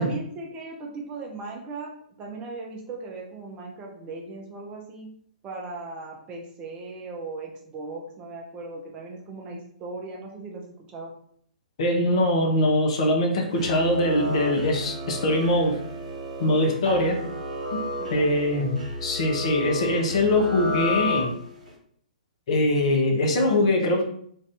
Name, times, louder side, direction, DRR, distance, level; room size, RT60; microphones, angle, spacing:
voice 1, 0.0-1.9 2.2-5.1 5.4-11.1 16.9-17.4 18.0-18.4, right 3 dB, 20° right, 0 dB, 0.6 m, -38 dB
voice 2, 11.8-15.8 16.4-17.2 18.1-21.3 22.5-24.0, left 1 dB, 45° left, 1 dB, 0.7 m, -22 dB
sound 1, 13.5-21.7, left 1 dB, 60° right, 1.1 m, -32 dB
2.6 x 2.5 x 3.3 m, 0.63 s
figure-of-eight pair, 120°, 4 cm